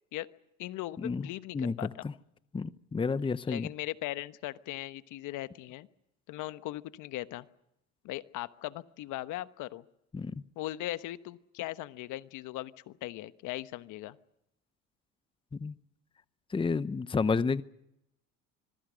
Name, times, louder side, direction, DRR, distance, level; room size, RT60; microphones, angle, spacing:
voice 1, 0.6-2.1 3.5-5.9 6.3-7.5 8.0-9.8 10.6-14.2, left 16 dB, 65° left, 13 dB, 1.2 m, -39 dB
voice 2, 1.5-2.1 2.5-3.7 10.1-10.3 15.5-15.7 16.5-17.6, left 4 dB, 15° left, 15 dB, 0.8 m, -30 dB
25.5 x 22.0 x 6.3 m, 0.81 s
supercardioid pair, 90°, 33 cm